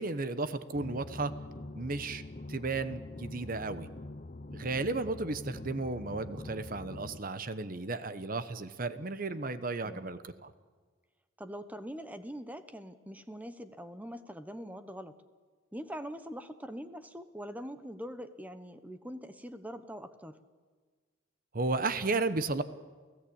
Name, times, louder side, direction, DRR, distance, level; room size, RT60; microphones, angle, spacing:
voice 1, 0.0-1.3 1.7-2.2 2.5-3.9 4.5-10.5 21.5-22.6, right 3 dB, 45° right, 12 dB, 1.0 m, -34 dB
sound 1, 0.7-7.2, left 2 dB, 40° left, 0.7 m, -45 dB
voice 2, 9.8-10.2 11.4-15.2 15.7-20.4, equal, 10° right, 10 dB, 1.0 m, -43 dB
29.5 x 16.0 x 8.7 m, 1.5 s
head